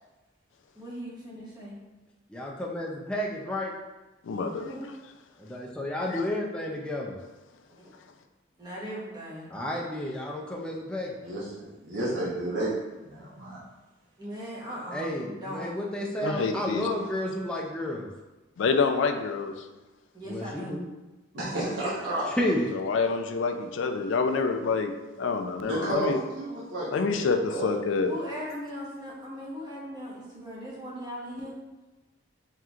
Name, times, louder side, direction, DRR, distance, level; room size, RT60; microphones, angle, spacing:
voice 1, 0.7-1.8 4.3-4.9 7.7-7.9 8.6-9.5 14.2-15.7 20.1-20.8 28.1-31.5, equal, 20° right, -5 dB, 1.0 m, -39 dB
voice 2, 2.3-3.7 5.4-7.2 9.5-11.1 14.9-18.1 20.3-20.9 22.4-22.7, left 1 dB, 5° left, -3 dB, 0.4 m, -31 dB
voice 3, 4.2-4.7 6.1-6.3 16.2-16.9 18.6-19.7 22.7-24.9 25.2-26.2 26.9-28.1, left 4 dB, 80° left, 6 dB, 0.4 m, -27 dB
voice 4, 11.2-12.7 13.0-13.6 21.3-22.3 25.6-27.2 27.5-27.7, right 1 dB, 85° right, -8 dB, 1.0 m, -31 dB
4.3 x 3.7 x 2.4 m, 1.1 s
head